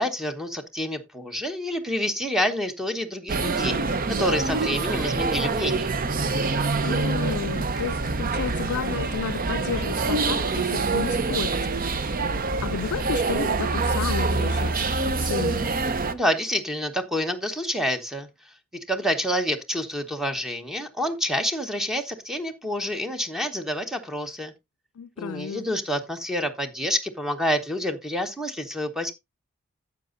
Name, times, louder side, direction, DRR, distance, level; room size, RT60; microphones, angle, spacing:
voice 1, 0.0-3.8 4.1-5.9 16.1-18.3 18.9-24.5 25.2-29.1, equal, ahead, 1.1 m, -28 dB
sound 1, 3.3-16.1, right 3 dB, 40° right, 0.7 m, -25 dB
voice 2, 6.8-11.6 12.6-15.6 25.0-25.7, left 7 dB, 70° left, 0.4 m, -32 dB
11.5 x 8.1 x 2.6 m
head